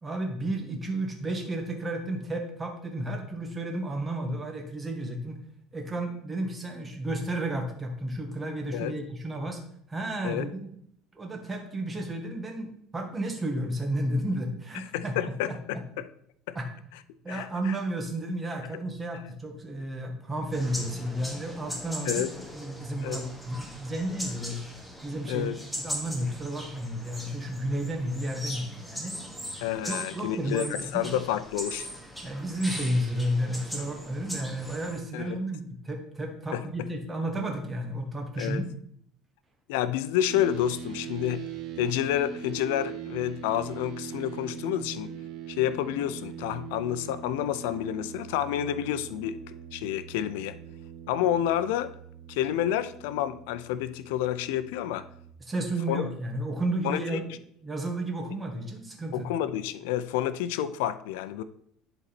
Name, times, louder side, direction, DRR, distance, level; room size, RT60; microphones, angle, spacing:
voice 1, 0.0-5.4 5.7-9.6 9.9-10.7 11.1-15.8 16.5-16.7 17.2-22.2 22.5-24.6 25.0-25.5 25.8-29.1 29.9-31.1 32.2-38.6 55.4-57.3 57.6-59.3, right 1 dB, 15° right, 3 dB, 1.7 m, -32 dB
voice 2, 14.9-16.1 16.5-16.6 17.3-17.7 22.1-22.3 23.0-23.3 25.3-25.6 29.6-31.9 35.1-35.4 36.5-36.6 38.4-38.6 39.7-41.4 41.8-45.1 45.5-49.4 49.7-50.6 51.1-51.9 52.3-55.1 55.9-56.0 56.8-57.2 59.1-61.4, left 11 dB, 90° left, 14 dB, 0.5 m, -29 dB
sound 1, 20.5-35.0, equal, ahead, 1.4 m, -39 dB
sound 2, 40.3-55.3, right 8 dB, 50° right, 1.1 m, -42 dB
11.0 x 4.1 x 4.3 m, 0.67 s
cardioid pair, 125°, 0 cm